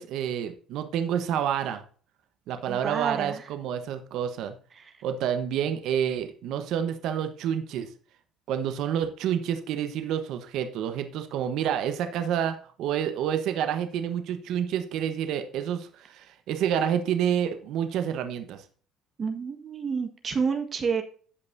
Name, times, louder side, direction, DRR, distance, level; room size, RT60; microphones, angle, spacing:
voice 1, 0.0-1.8 2.5-4.5 5.0-7.9 8.5-18.6, right 9 dB, 70° right, 8 dB, 1.1 m, -28 dB
voice 2, 2.7-3.4 4.8-4.9 19.2-21.0, right 5 dB, 40° right, 6 dB, 1.5 m, -29 dB
15.5 x 5.4 x 2.7 m, 0.42 s
supercardioid pair, 75°, 0 cm